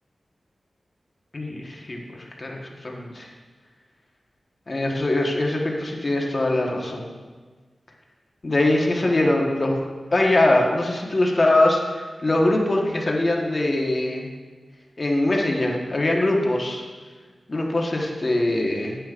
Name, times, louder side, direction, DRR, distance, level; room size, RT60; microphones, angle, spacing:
voice 1, 1.3-3.3 4.7-7.1 8.4-14.3 15.0-16.8 17.5-19.0, left 1 dB, 35° left, 0 dB, 1.2 m, -22 dB
10.5 x 10.0 x 2.5 m, 1.4 s
wide cardioid pair, 95°, 0 cm